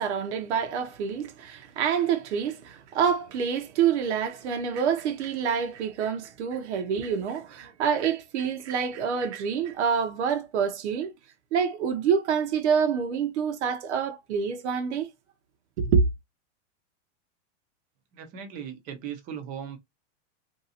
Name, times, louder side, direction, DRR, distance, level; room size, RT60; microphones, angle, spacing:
voice 1, 0.0-11.1 11.5-15.1 15.8-16.1, right 7 dB, 70° right, 0.8 m, -27 dB
voice 2, 18.1-19.8, right 8 dB, 25° right, 0.6 m, -38 dB
3.0 x 2.7 x 2.7 m
supercardioid pair, 165°, 36 cm